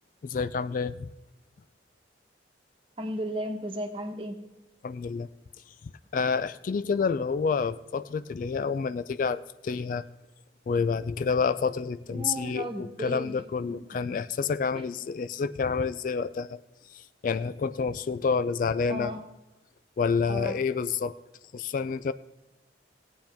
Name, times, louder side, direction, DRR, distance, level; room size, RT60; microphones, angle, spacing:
voice 1, 0.2-1.1 4.8-5.3 6.1-10.0 10.7-16.6 17.2-19.1 20.0-21.2 21.5-22.1, left 5 dB, 45° left, 14 dB, 0.3 m, -28 dB
voice 2, 3.0-4.4 12.1-13.4 18.9-19.2 20.3-20.5, right 1 dB, 30° right, 4 dB, 1.2 m, -34 dB
17.5 x 8.9 x 3.5 m, 1.0 s
head